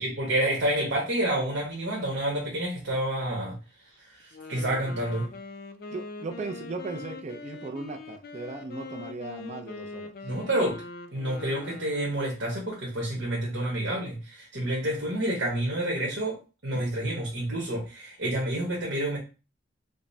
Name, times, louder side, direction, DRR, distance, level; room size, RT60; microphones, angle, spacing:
voice 1, 0.0-3.6 4.0-5.3 10.2-10.8 11.1-19.2, right 1 dB, 80° right, -3 dB, 1.2 m, -29 dB
Wind instrument woodwind instrument, 4.2-12.2, left 3 dB, 55° left, 0.4 m, -42 dB
voice 2, 5.9-10.1, right 3 dB, 40° right, 3 dB, 0.5 m, -37 dB
5.1 x 2.1 x 2.7 m, 0.32 s
head